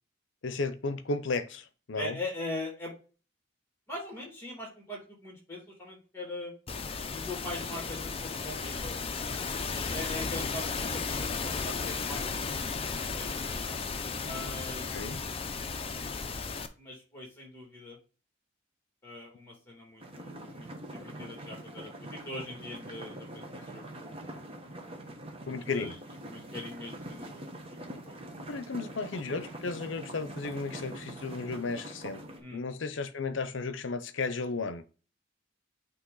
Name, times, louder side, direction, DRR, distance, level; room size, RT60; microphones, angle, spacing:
voice 1, 0.4-2.2 14.9-15.2 25.5-26.0 28.5-32.2 32.5-34.8, left 3 dB, 70° left, 0.7 m, -34 dB
voice 2, 1.9-2.9 3.9-6.5 7.1-9.1 9.7-12.9 13.2-13.4 14.1-15.1 16.8-18.0 19.0-24.5 25.4-25.9 26.2-28.2 32.4-32.6, left 2 dB, 10° left, 2.6 m, -42 dB
sound 1, 6.7-16.7, left 4 dB, 30° left, 0.5 m, -34 dB
sound 2, 20.0-32.4, right 1 dB, 30° right, 1.1 m, -44 dB
8.8 x 2.9 x 3.9 m
head